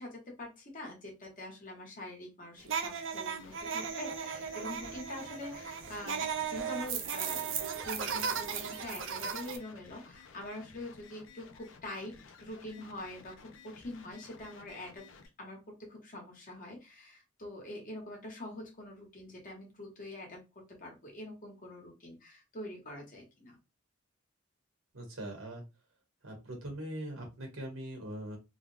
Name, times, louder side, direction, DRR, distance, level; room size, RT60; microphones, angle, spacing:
voice 1, 0.0-7.5 7.8-15.0 15.4-20.4 20.8-23.6, left 1 dB, 45° left, 0 dB, 1.4 m, -45 dB
sound 1, 2.7-9.6, right 7 dB, 65° right, 0.6 m, -36 dB
sound 2, 3.4-15.3, left 5 dB, 70° left, 0.6 m, -55 dB
voice 2, 24.9-25.6 26.2-28.4, right 1 dB, 85° right, 1 dB, 1.7 m, -41 dB
3.6 x 2.4 x 3.3 m, 0.26 s
head